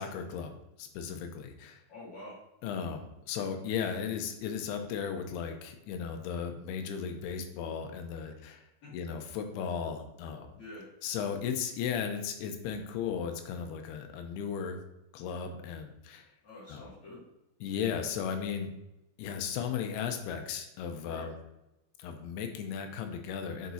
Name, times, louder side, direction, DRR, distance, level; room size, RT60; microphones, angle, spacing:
voice 1, 0.0-1.8 2.6-8.6 8.9-10.6 11.0-14.8 15.1-16.3 16.7-16.9 17.6-18.7 19.2-21.3 22.0-23.7, left 7 dB, 90° left, 5 dB, 2.7 m, -36 dB
voice 2, 1.9-2.4 8.8-8.9 10.5-10.9 16.4-17.2 21.0-21.3, left 2 dB, 50° left, -10 dB, 3.2 m, -46 dB
10.0 x 4.7 x 2.7 m, 0.89 s
omnidirectional pair, 4.6 m